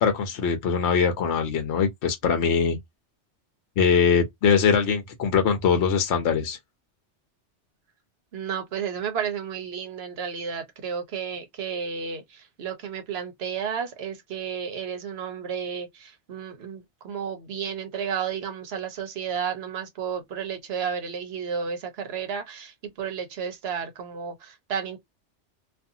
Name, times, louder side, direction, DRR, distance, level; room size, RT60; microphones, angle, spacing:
voice 1, 0.0-2.8 3.8-6.6, left 6 dB, 70° left, 1.0 m, -22 dB
voice 2, 8.3-25.0, right 7 dB, 65° right, 1.0 m, -32 dB
2.5 x 2.5 x 2.7 m
omnidirectional pair, 1.2 m